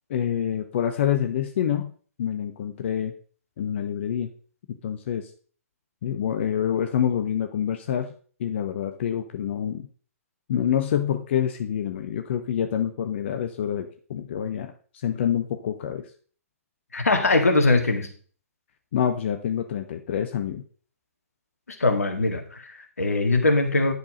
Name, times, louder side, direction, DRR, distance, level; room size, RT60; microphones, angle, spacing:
voice 1, 0.1-1.9 2.2-3.1 3.6-4.3 4.8-5.3 6.0-8.1 8.4-9.9 10.5-16.0 18.9-20.6, left 9 dB, 50° left, 6 dB, 0.9 m, -27 dB
voice 2, 16.9-18.1 21.7-23.9, left 2 dB, 75° left, 6 dB, 1.9 m, -22 dB
10.5 x 4.8 x 5.1 m, 0.43 s
figure-of-eight pair, 125°, 8 cm